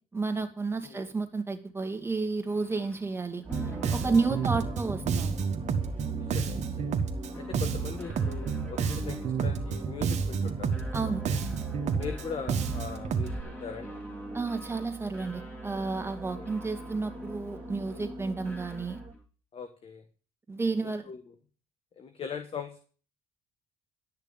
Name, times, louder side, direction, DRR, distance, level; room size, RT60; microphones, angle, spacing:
voice 1, 0.1-5.4 10.9-11.2 14.3-19.0 20.5-21.1, right 4 dB, 15° right, 2.3 m, -31 dB
sound 1, 2.5-19.2, left 1 dB, 10° left, 3.3 m, -45 dB
sound 2, 3.4-19.1, right 4 dB, 35° right, 1.4 m, -44 dB
Bass guitar, 3.5-13.4, right 5 dB, 55° right, 1.8 m, -30 dB
voice 2, 4.0-4.5 6.1-6.9 7.4-10.7 11.9-14.0 16.3-16.5 17.8-18.1 19.5-20.0 20.8-21.2 22.0-22.8, left 6 dB, 40° left, 1.6 m, -40 dB
12.0 x 6.6 x 9.1 m
cardioid pair, 105°, 14 cm